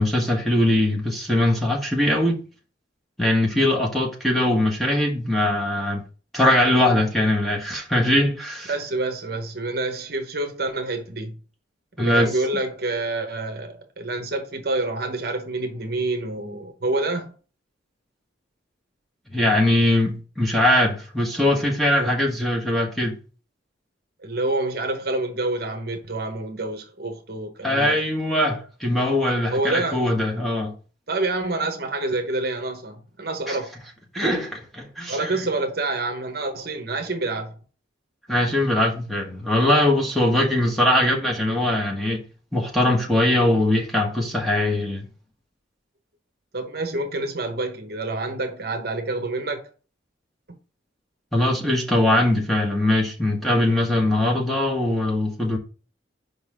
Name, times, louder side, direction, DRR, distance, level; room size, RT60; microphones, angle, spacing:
voice 1, 0.0-2.4 3.2-6.0 6.3-8.7 12.0-12.3 19.3-23.1 27.6-30.7 33.5-33.6 34.1-35.4 38.3-42.2 42.5-45.1 51.3-55.6, left 1 dB, ahead, 1.3 m, -21 dB
voice 2, 8.7-11.4 12.0-17.3 22.0-22.1 24.2-27.9 29.5-30.0 31.1-33.7 35.1-37.5 46.5-49.6, right 2 dB, 50° right, 0.9 m, -27 dB
5.2 x 4.0 x 4.9 m
head